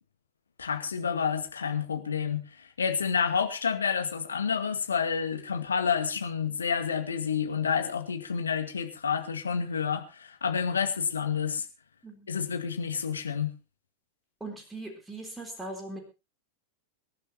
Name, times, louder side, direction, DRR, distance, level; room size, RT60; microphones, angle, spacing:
voice 1, 0.6-11.7 12.3-13.5, left 6 dB, 70° left, 2.2 m, -29 dB
voice 2, 14.4-16.0, right 2 dB, 10° right, 3.8 m, -40 dB
25.0 x 11.5 x 2.9 m
figure-of-eight pair, 90°, 0 cm